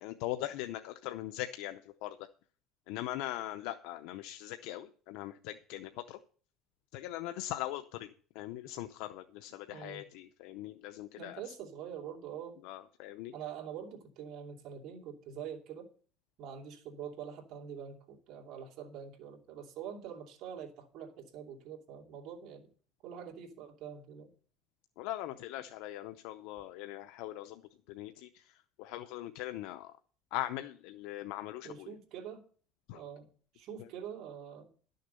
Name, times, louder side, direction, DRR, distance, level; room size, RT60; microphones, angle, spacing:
voice 1, 0.0-2.2 2.9-6.2 6.9-8.1 8.3-11.4 12.6-13.3 25.0-27.6 27.9-28.3 28.8-29.9 30.3-31.9 32.9-33.0, left 14 dB, 80° left, 0.6 m, -40 dB
voice 2, 9.7-10.0 11.2-12.6 13.3-15.9 16.4-22.7 23.0-24.3 31.6-32.4 32.9-33.3 33.5-34.7, right 8 dB, 60° right, 2.7 m, -45 dB
11.5 x 6.6 x 6.8 m
cardioid pair, 135°, 0 cm